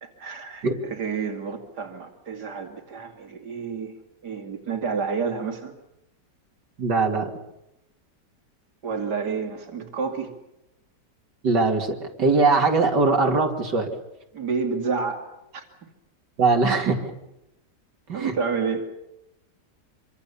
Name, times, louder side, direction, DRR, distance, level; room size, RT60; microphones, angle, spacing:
voice 1, 0.0-3.9 4.2-5.7 8.8-10.3 14.3-15.2 15.5-15.6 18.1-18.9, right 5 dB, 75° right, 3 dB, 3.1 m, -29 dB
voice 2, 6.8-7.3 11.4-13.9 16.4-17.1 18.1-18.3, right 3 dB, 90° right, 2 dB, 3.1 m, -21 dB
26.0 x 25.5 x 7.0 m, 0.87 s
omnidirectional pair, 1.8 m